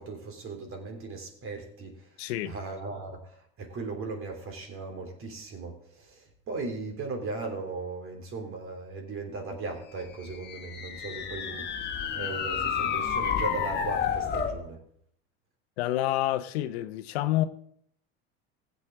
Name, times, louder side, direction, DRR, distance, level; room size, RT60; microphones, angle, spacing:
voice 1, 0.0-2.1 2.4-11.7 12.1-14.8, right 3 dB, 45° right, 4 dB, 3.3 m, -37 dB
voice 2, 2.2-2.5 15.8-17.4, left 14 dB, 80° left, 12 dB, 0.9 m, -28 dB
sound 1, 10.2-14.6, left 7 dB, 35° left, 1.7 m, -30 dB
15.5 x 8.3 x 3.7 m, 0.66 s
supercardioid pair, 95°, 31 cm